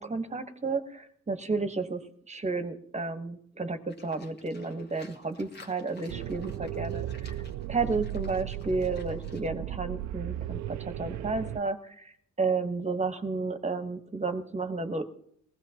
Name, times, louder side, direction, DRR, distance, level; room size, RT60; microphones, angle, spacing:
voice 1, 0.0-2.0 2.3-15.0, right 3 dB, 25° right, 8 dB, 1.2 m, -32 dB
Livestock farm animals working animals, 3.9-9.5, left 4 dB, 35° left, 1.5 m, -54 dB
sound 1, 6.1-11.6, right 13 dB, 65° right, 0.5 m, -36 dB
19.5 x 16.0 x 2.9 m, 0.66 s
cardioid pair, 90°, 30 cm